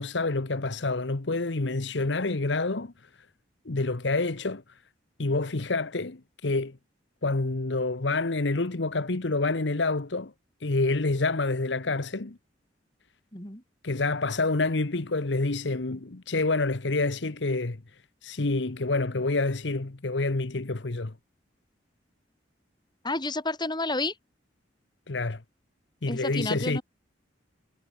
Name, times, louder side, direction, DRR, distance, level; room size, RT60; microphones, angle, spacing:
voice 1, 0.0-2.9 3.6-4.6 5.2-6.8 7.2-10.3 10.6-12.4 13.8-17.8 18.2-21.1 25.1-25.4 26.0-26.8, left 3 dB, 65° left, 1.1 m, -27 dB
voice 2, 13.3-13.6 23.0-24.1 26.1-26.8, left 2 dB, 25° left, 5.2 m, -30 dB
head